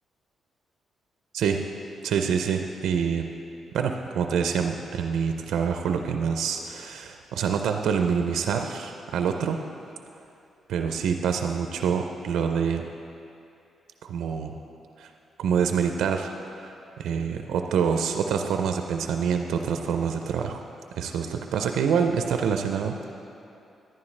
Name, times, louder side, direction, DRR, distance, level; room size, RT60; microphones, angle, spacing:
voice 1, 2.0-3.3 3.7-9.6 10.7-12.8 14.0-14.6 15.0-15.1 15.4-20.6 21.0-23.1, right 7 dB, 85° right, 5 dB, 0.4 m, -26 dB
10.5 x 9.7 x 3.2 m, 2.7 s
cardioid pair, 75°, 0 cm